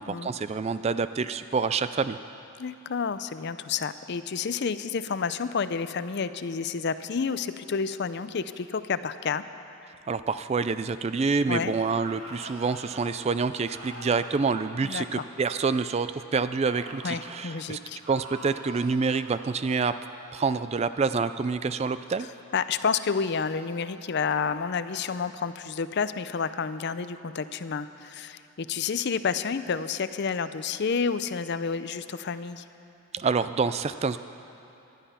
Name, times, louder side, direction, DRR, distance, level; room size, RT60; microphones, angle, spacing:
voice 1, 0.0-2.2 10.1-17.8 18.1-20.0 20.3-22.3 33.1-34.2, right 4 dB, 30° right, 12 dB, 0.3 m, -27 dB
voice 2, 2.6-9.5 11.5-11.7 14.8-15.2 17.0-18.0 22.5-32.6, left 5 dB, 50° left, 12 dB, 0.5 m, -30 dB
sound 1, 11.8-13.1 13.7-15.9 16.6-17.4 18.0-20.5, right 1 dB, 70° right, 4.0 m, -46 dB
19.0 x 12.0 x 5.7 m, 2.8 s
head